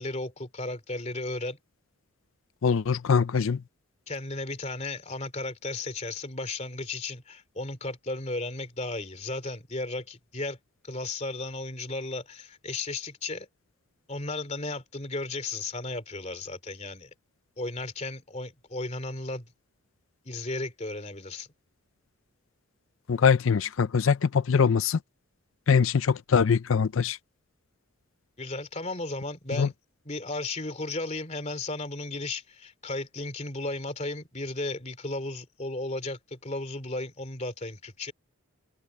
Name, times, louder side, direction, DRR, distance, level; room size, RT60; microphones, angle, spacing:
voice 1, 0.0-1.6 4.1-10.6 10.8-13.5 14.1-17.1 17.6-19.5 20.2-21.5 28.4-29.7 30.0-38.1, left 2 dB, 30° left, 3.0 m, -34 dB
voice 2, 2.6-3.6 23.1-25.0 25.7-27.2 29.6-29.7, left 6 dB, 65° left, 0.5 m, -23 dB
head